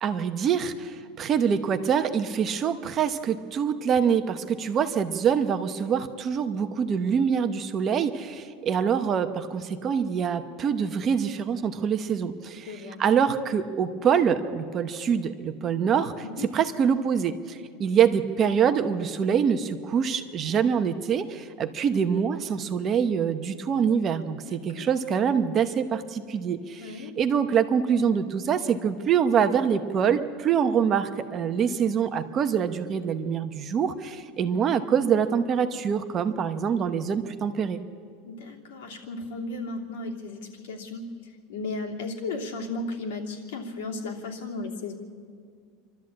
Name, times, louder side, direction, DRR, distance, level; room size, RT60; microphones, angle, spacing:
voice 1, 0.0-12.7 13.0-16.1 16.5-26.9 27.2-37.8, right 7 dB, 25° right, 8 dB, 0.8 m, -25 dB
voice 2, 12.7-13.0 16.4-16.5 24.4-25.2 26.8-27.1 38.2-44.9, left 3 dB, 90° left, 0 dB, 3.0 m, -35 dB
27.5 x 12.5 x 8.6 m, 2.2 s
supercardioid pair, 170°, 0 cm